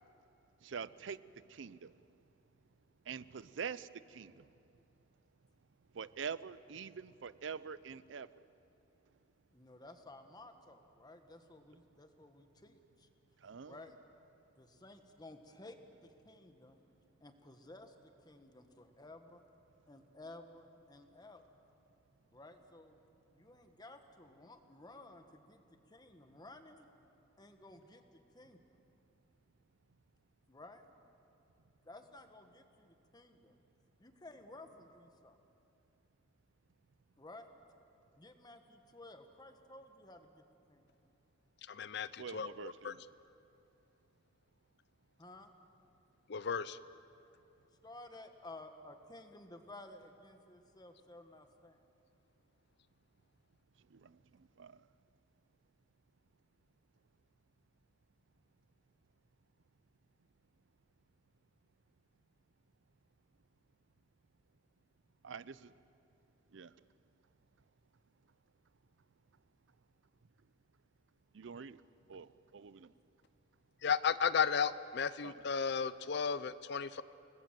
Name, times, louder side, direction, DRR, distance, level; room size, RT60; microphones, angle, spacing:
voice 1, 0.6-2.0 3.0-4.5 5.9-8.5 13.4-13.9 42.2-43.0 53.8-54.9 65.2-65.7 66.5-66.8 71.3-71.8 72.1-72.9 75.2-75.4, right 6 dB, 75° right, 17 dB, 0.5 m, -46 dB
voice 2, 9.5-13.1 13.6-13.9 14.6-16.8 17.2-17.9 18.2-19.4 19.9-21.4 22.3-23.0 23.3-26.9 27.4-28.6 30.5-30.9 31.8-33.5 34.0-35.4 37.2-37.5 38.2-40.4 40.7-40.9 45.2-45.5 47.8-51.8, left 2 dB, 20° left, 6 dB, 1.5 m, -55 dB
voice 3, 41.7-42.9 46.3-46.8 73.8-77.0, left 6 dB, 60° left, 15 dB, 0.5 m, -34 dB
28.5 x 20.0 x 7.6 m, 2.7 s
head